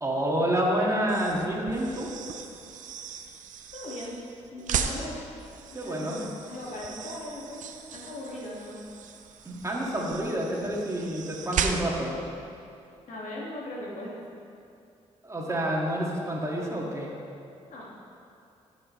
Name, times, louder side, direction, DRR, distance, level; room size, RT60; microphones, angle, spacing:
voice 1, 0.0-2.1 5.0-5.1 5.7-6.2 9.4-12.2 15.2-17.1, right 1 dB, 25° right, -3 dB, 2.1 m, -28 dB
sound 1, 1.0-12.2, right 7 dB, 75° right, 0.6 m, -36 dB
voice 2, 3.7-4.2 4.5-5.2 5.7-8.8 13.1-14.2 17.7-17.9, left 1 dB, 70° left, -4 dB, 2.1 m, -39 dB
15.5 x 6.2 x 3.3 m, 2.6 s
supercardioid pair, 60°, 13 cm